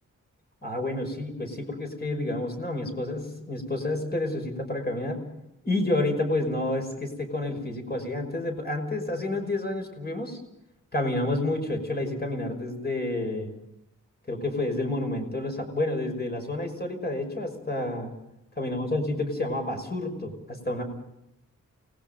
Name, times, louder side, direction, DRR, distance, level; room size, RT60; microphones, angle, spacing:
voice 1, 0.6-5.3 5.6-10.4 10.9-13.5 14.3-18.1 18.6-20.8, left 2 dB, 30° left, 4 dB, 5.6 m, -29 dB
29.0 x 20.5 x 5.4 m, 0.82 s
wide cardioid pair, 130°, 32 cm